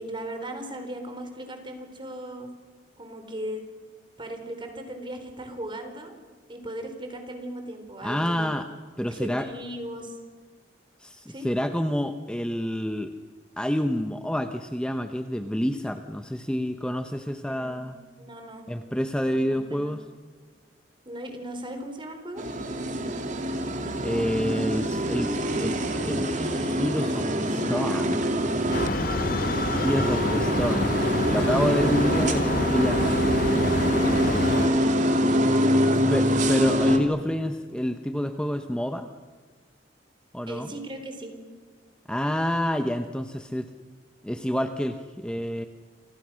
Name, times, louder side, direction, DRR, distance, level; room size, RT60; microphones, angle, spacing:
voice 1, 0.0-2.5 3.0-3.6 4.2-6.1 6.5-8.5 9.1-10.2 11.3-11.5 17.5-17.8 18.2-18.7 19.7-20.0 21.0-22.4 28.7-29.9 34.6-35.0 35.3-36.6 40.5-41.3, right 1 dB, 30° right, 6 dB, 4.4 m, -38 dB
voice 2, 8.0-8.7 9.0-9.5 11.0-13.1 13.6-18.0 18.7-20.0 24.0-28.3 29.8-30.9 31.3-33.2 36.1-39.1 40.3-40.7 42.1-43.7 44.2-45.7, equal, 5° left, 7 dB, 0.9 m, -28 dB
sound 1, 22.4-37.0, equal, 45° right, 2.6 m, -25 dB
sound 2, 28.7-34.7, left 2 dB, 55° left, 1.8 m, -27 dB
28.5 x 26.0 x 6.4 m, 1.5 s
head